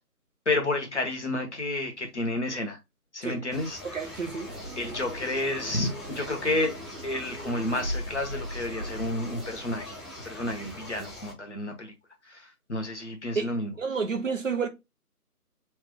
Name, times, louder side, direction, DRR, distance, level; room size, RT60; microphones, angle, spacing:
voice 1, 0.5-2.8 3.1-4.1 4.8-6.7 7.0-10.0 10.2-11.9 12.3-13.8, left 2 dB, 45° left, 1.1 m, -30 dB
sound 1, 3.5-11.3, left 2 dB, ahead, 0.6 m, -43 dB
voice 2, 3.9-4.5 13.4-13.5 13.8-14.7, right 5 dB, 55° right, 0.8 m, -29 dB
sound 2, 4.5-10.1, equal, 75° right, 1.1 m, -39 dB
3.3 x 2.9 x 3.5 m
figure-of-eight pair, 175°, 46 cm